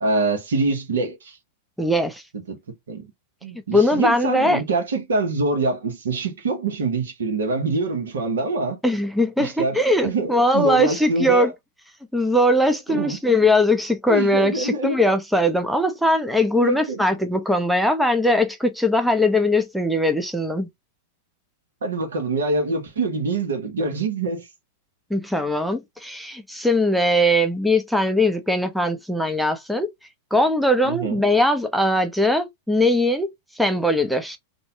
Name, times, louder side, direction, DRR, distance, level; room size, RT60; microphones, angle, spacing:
voice 1, 0.0-1.4 2.5-2.6 2.9-3.1 3.4-8.8 9.4-11.5 12.9-13.2 14.1-15.0 16.5-17.0 21.8-24.5 30.8-31.2, right 3 dB, 75° right, 0.9 m, -25 dB
voice 2, 1.8-2.2 3.7-4.6 8.8-11.5 12.1-20.7 25.1-29.9 30.3-33.3 33.6-34.4, left 1 dB, ahead, 0.5 m, -20 dB
2.6 x 2.2 x 2.7 m
hypercardioid pair, 100°, 0 cm